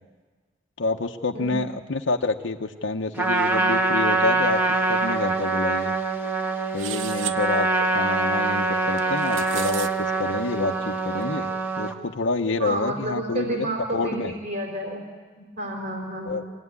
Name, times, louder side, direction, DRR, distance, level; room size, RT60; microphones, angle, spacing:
voice 1, 0.8-5.9 6.7-7.7 7.9-14.3 16.3-16.4, left 3 dB, 75° left, 3 dB, 0.9 m, -28 dB
voice 2, 1.3-1.6 7.8-7.9 12.6-15.0 15.4-16.5, right 1 dB, 55° right, -1 dB, 4.1 m, -30 dB
Trumpet, 3.1-11.9, right 3 dB, 10° right, 1.4 m, -24 dB
sound 1, 6.8-7.4 9.0-9.9, right 10 dB, 85° right, 0.8 m, -33 dB
24.5 x 17.0 x 9.6 m, 1.5 s
head